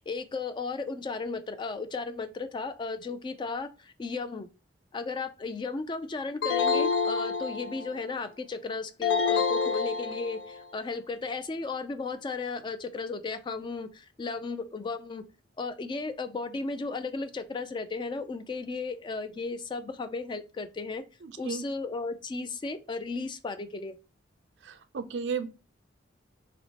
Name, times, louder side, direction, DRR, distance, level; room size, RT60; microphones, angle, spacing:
voice 1, 0.0-4.5 4.9-15.2 15.6-21.0 21.4-24.0, left 4 dB, 25° left, 0.3 m, -35 dB
sound 1, 6.4-8.0 9.0-10.6, left 5 dB, 85° left, 0.5 m, -27 dB
voice 2, 21.2-21.6 24.7-25.5, right 5 dB, 70° right, 0.4 m, -34 dB
4.3 x 2.1 x 2.8 m
head